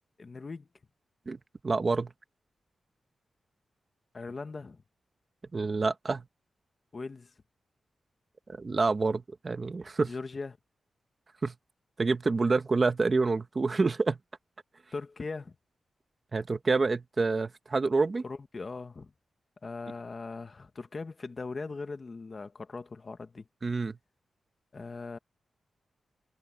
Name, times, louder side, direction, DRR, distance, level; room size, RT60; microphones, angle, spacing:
voice 1, 0.2-0.7 4.1-4.8 6.9-7.3 10.0-10.6 14.9-15.5 18.2-19.1 19.6-23.5 24.7-25.2, left 4 dB, 30° left, 1.1 m, -40 dB
voice 2, 1.6-2.1 5.5-6.2 8.6-10.1 11.4-11.5 12.0-14.2 16.3-18.2 23.6-24.0, right 3 dB, 30° right, 1.2 m, -27 dB
wide cardioid pair, 165°, 0 cm